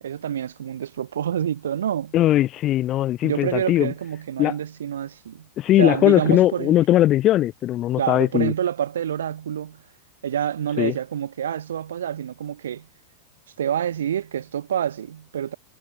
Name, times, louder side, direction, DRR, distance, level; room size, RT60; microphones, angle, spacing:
voice 1, 0.0-2.1 3.2-5.5 5.8-6.8 8.0-9.8 10.2-12.9 13.6-15.5, right 9 dB, 80° right, 1.8 m, -27 dB
voice 2, 2.1-3.9 4.4-4.5 5.6-8.5 10.8-10.9, left 13 dB, 40° left, 2.7 m, -19 dB
hypercardioid pair, 100°, 0 cm